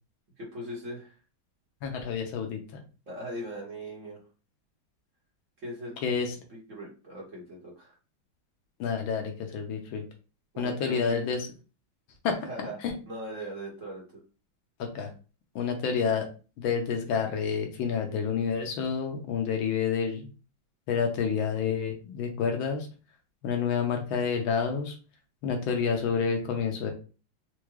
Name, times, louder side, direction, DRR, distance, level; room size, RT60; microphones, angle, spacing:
voice 1, 0.4-1.1 3.1-4.2 5.6-6.0 6.5-7.9 10.5-11.2 12.4-12.8 13.1-14.2, equal, 45° right, -4 dB, 1.3 m, -39 dB
voice 2, 1.8-2.6 6.0-6.3 8.8-10.0 10.6-11.5 12.2-12.4 12.8-12.9 14.8-15.1 15.5-16.3 16.6-20.3 20.9-22.9 23.4-24.9 25.4-26.9, left 6 dB, 75° left, 3 dB, 1.5 m, -29 dB
4.6 x 2.2 x 3.1 m, 0.35 s
omnidirectional pair, 2.3 m